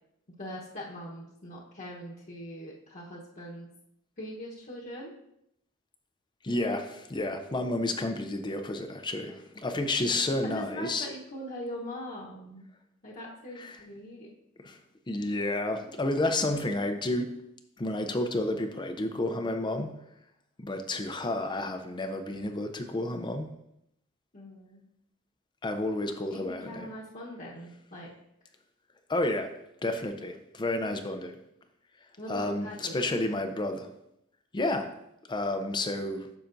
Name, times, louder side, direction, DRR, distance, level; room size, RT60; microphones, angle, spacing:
voice 1, 0.4-3.7 4.2-5.1 10.4-12.7 13.0-14.3 24.3-24.8 26.3-28.1 32.2-33.1, equal, 40° left, -5 dB, 1.1 m, -41 dB
voice 2, 6.4-11.1 13.6-13.8 14.6-14.8 15.1-17.4 17.8-20.0 20.6-23.5 25.6-26.9 29.1-29.5 29.8-31.4 32.3-33.9 34.5-34.9 35.3-36.3, left 2 dB, 20° left, 6 dB, 0.5 m, -31 dB
10.0 x 6.8 x 2.6 m, 0.80 s
head